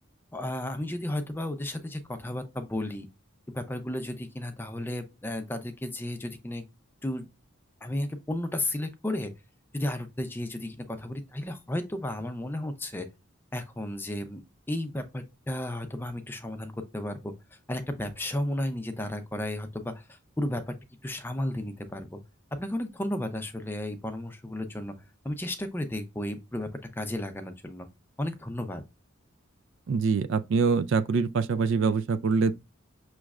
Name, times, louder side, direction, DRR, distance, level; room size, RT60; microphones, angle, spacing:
voice 1, 0.3-3.1 3.5-6.6 7.0-7.3 7.8-9.3 9.7-13.1 13.5-14.4 14.7-20.7 21.0-22.2 22.5-24.9 25.2-27.9 28.2-28.8, left 1 dB, 10° left, 0.5 m, -33 dB
voice 2, 29.9-32.5, right 5 dB, 60° right, 0.3 m, -24 dB
6.1 x 3.1 x 2.4 m
head